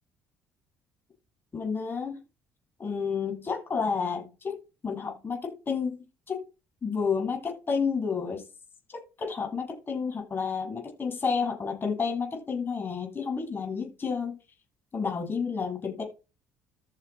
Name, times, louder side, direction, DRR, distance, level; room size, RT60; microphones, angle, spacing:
voice 1, 1.5-2.2 2.8-4.6 4.8-6.4 6.8-8.4 8.9-14.4 14.9-16.0, left 5 dB, 35° left, 6.9 m, -30 dB
13.5 x 4.8 x 4.6 m
hypercardioid pair, 65°, 6 cm